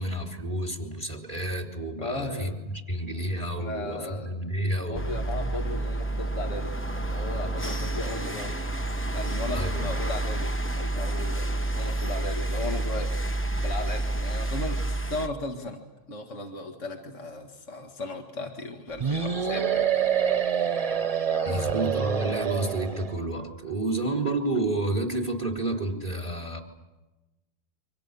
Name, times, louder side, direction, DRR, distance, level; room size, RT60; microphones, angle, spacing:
voice 1, 0.0-5.0 9.5-9.9 21.4-26.6, right 2 dB, 30° left, 2 dB, 3.8 m, -30 dB
voice 2, 2.0-2.6 3.5-4.3 4.8-8.6 9.1-13.1 13.6-15.8 16.1-20.2 21.5-21.7, left 2 dB, 70° left, 3 dB, 2.2 m, -36 dB
sound 1, 4.9-15.3, right 2 dB, 10° left, 0.9 m, -29 dB
sound 2, 19.0-23.2, right 8 dB, 30° right, 0.9 m, -26 dB
29.0 x 25.5 x 6.9 m, 1.1 s
omnidirectional pair, 1.3 m